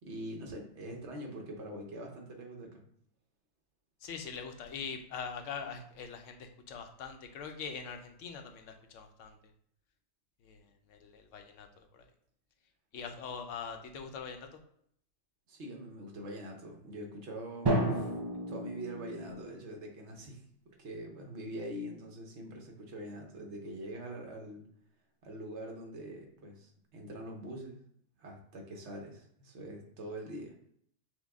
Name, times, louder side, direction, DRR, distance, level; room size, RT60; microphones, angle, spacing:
voice 1, 0.0-2.8 15.5-18.1 18.5-20.4 20.8-24.6 25.2-27.8 28.2-30.5, right 1 dB, 65° right, 1 dB, 1.2 m, -44 dB
voice 2, 4.0-9.4 10.4-12.1 12.9-14.6, left 6 dB, 85° left, 5 dB, 1.0 m, -43 dB
Drum, 17.7-19.6, right 1 dB, 40° right, 0.3 m, -32 dB
6.1 x 2.2 x 3.5 m, 0.67 s
omnidirectional pair, 1.3 m